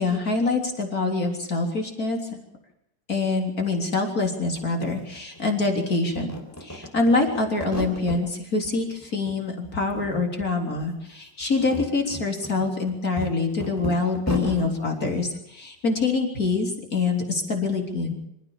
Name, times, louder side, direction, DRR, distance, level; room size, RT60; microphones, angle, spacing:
voice 1, 0.0-2.4 3.1-6.3 6.6-18.2, left 3 dB, 50° left, 2 dB, 4.1 m, -25 dB
sound 1, 4.2-4.3 4.5-5.7 6.0-8.2 8.6-9.4 9.6-10.5 10.8-10.9 11.4-14.7, left 1 dB, 10° left, 4.2 m, -35 dB
26.5 x 14.5 x 7.2 m, 0.81 s
omnidirectional pair, 2.0 m